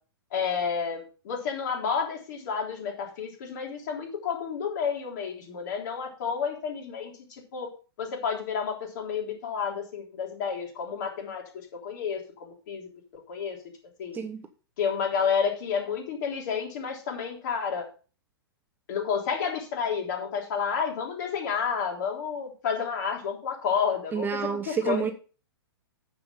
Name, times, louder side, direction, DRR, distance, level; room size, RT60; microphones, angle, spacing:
voice 1, 0.3-7.7 8.0-12.9 13.3-13.6 14.0-14.2 14.8-17.9 18.9-24.3 24.6-25.1, left 6 dB, 50° left, 1 dB, 3.6 m, -30 dB
voice 2, 24.1-25.1, right 6 dB, 15° right, 9 dB, 0.8 m, -29 dB
9.6 x 6.9 x 5.2 m, 0.37 s
figure-of-eight pair, 110°, 13 cm